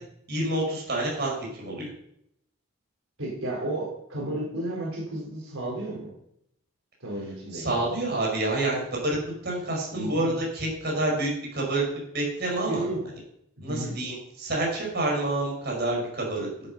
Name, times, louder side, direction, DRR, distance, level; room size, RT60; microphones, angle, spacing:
voice 1, 0.3-1.9 7.5-9.2 9.4-11.8 12.1-12.9 13.6-16.5, right 2 dB, 50° right, -2 dB, 5.5 m, -28 dB
voice 2, 3.2-6.1 7.0-7.7 9.9-10.3 12.7-13.0 13.7-13.9, right 1 dB, 80° right, -4 dB, 4.4 m, -32 dB
13.0 x 8.2 x 5.5 m, 0.75 s
head